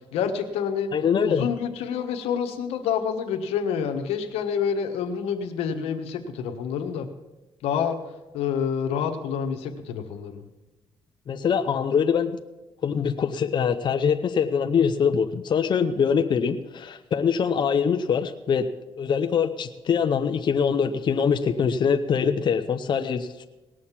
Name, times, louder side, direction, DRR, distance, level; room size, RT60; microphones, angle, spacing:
voice 1, 0.1-0.9 1.2-7.1 7.6-8.0 8.3-10.4, left 7 dB, 90° left, 5 dB, 1.3 m, -28 dB
voice 2, 0.9-1.5 11.3-12.4 12.8-18.7 19.0-23.4, left 6 dB, 50° left, 6 dB, 0.8 m, -23 dB
18.5 x 6.4 x 7.4 m, 1.1 s
cardioid pair, 85°, 10 cm